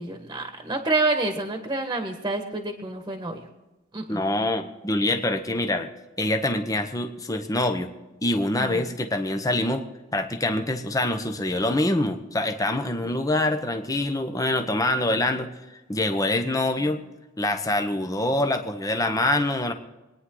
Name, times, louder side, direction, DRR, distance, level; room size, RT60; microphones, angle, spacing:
voice 1, 0.0-3.4 3.9-4.2 8.6-8.9, right 2 dB, 20° right, 4 dB, 1.4 m, -28 dB
voice 2, 4.1-5.9 6.2-7.9 8.2-9.8 10.1-15.5 15.9-17.0 17.4-19.7, left 1 dB, 15° left, 6 dB, 0.9 m, -25 dB
23.5 x 9.7 x 3.9 m, 1.1 s
head